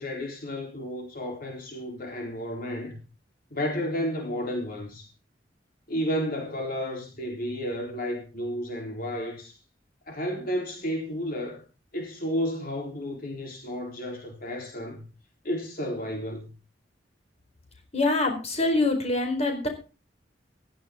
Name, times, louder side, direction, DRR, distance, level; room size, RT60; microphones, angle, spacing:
voice 1, 0.0-3.0 3.5-5.1 5.9-9.6 10.1-11.6 11.9-15.1 15.4-16.5, equal, 55° left, 3.9 m, -32 dB
voice 2, 17.9-19.7, left 2 dB, 40° left, 4.6 m, -24 dB
16.5 x 14.5 x 3.8 m
head